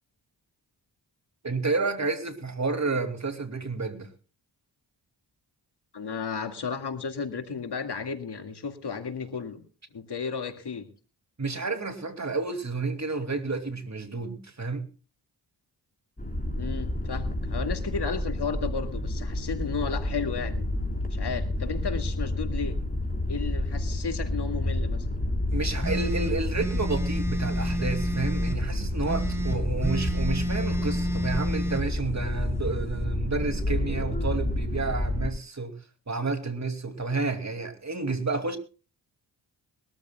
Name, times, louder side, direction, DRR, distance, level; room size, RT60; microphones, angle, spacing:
voice 1, 1.4-4.1 11.4-14.8 25.5-35.7 36.1-38.6, right 3 dB, 35° right, 2.7 m, -30 dB
voice 2, 5.9-9.6 9.9-10.9 16.6-20.7 21.1-22.8 23.3-25.1, left 5 dB, 60° left, 2.1 m, -33 dB
sound 1, 16.2-35.3, left 1 dB, 20° left, 4.6 m, -29 dB
sound 2, 25.8-28.6 29.0-31.8, right 1 dB, 5° right, 4.1 m, -31 dB
22.0 x 13.5 x 2.3 m
cardioid pair, 45°, 45 cm